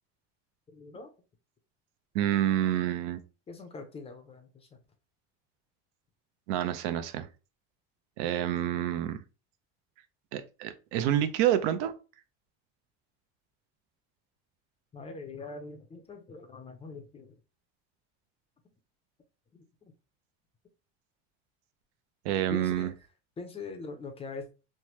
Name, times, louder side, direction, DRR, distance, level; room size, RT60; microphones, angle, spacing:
voice 1, 0.7-1.1 3.5-4.8 14.9-17.4 22.5-22.9 23.4-24.5, left 3 dB, 20° left, 0.5 m, -42 dB
voice 2, 2.1-3.2 6.5-7.3 8.2-9.2 10.3-11.9 22.2-22.9, right 11 dB, 70° right, 0.5 m, -28 dB
3.2 x 2.1 x 2.9 m
supercardioid pair, 130°, 32 cm